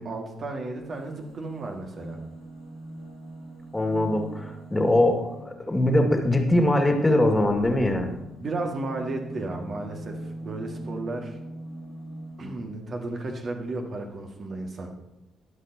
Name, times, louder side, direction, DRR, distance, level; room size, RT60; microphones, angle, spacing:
voice 1, 0.0-2.2 8.4-11.4 12.4-14.9, right 2 dB, 40° right, 2 dB, 2.2 m, -33 dB
sound 1, 0.8-5.6 7.3-12.8 13.7-13.8 14.0-14.1, right 1 dB, 70° right, 4.1 m, -42 dB
voice 2, 3.7-8.1, left 1 dB, 15° left, 3 dB, 2.3 m, -22 dB
21.0 x 7.9 x 3.0 m, 0.95 s
figure-of-eight pair, 45°, 0 cm